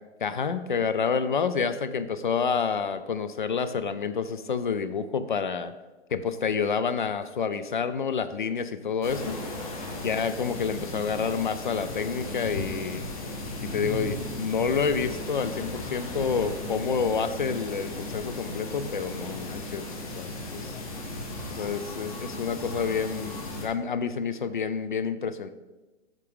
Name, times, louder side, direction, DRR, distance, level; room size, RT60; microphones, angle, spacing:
voice 1, 0.2-5.7 6.1-9.4 10.0-13.0 13.7-19.9 20.2-20.7 21.5-25.5, left 6 dB, 45° left, 12 dB, 0.4 m, -28 dB
sound 1, 9.0-23.7, left 1 dB, 30° left, 1.1 m, -36 dB
8.1 x 5.9 x 3.6 m, 1.2 s
hypercardioid pair, 180°, 34 cm